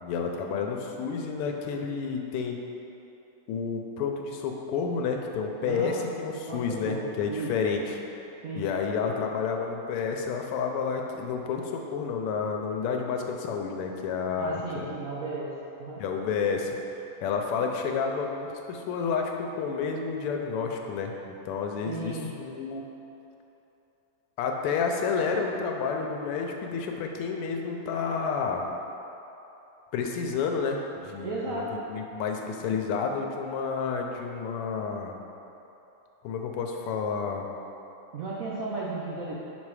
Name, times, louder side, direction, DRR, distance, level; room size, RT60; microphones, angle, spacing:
voice 1, 0.0-2.6 3.5-8.0 8.6-14.9 16.0-16.8 17.2-22.8 24.4-28.6 29.9-35.2 36.2-37.4, left 5 dB, 85° left, 2 dB, 1.5 m, -30 dB
voice 2, 5.6-5.9 6.5-7.5 8.4-8.7 14.4-15.5 15.8-16.0 21.9-22.3 31.2-31.7 38.1-39.4, right 3 dB, 70° right, -6 dB, 0.8 m, -34 dB
6.0 x 4.2 x 4.8 m, 2.9 s
omnidirectional pair, 2.4 m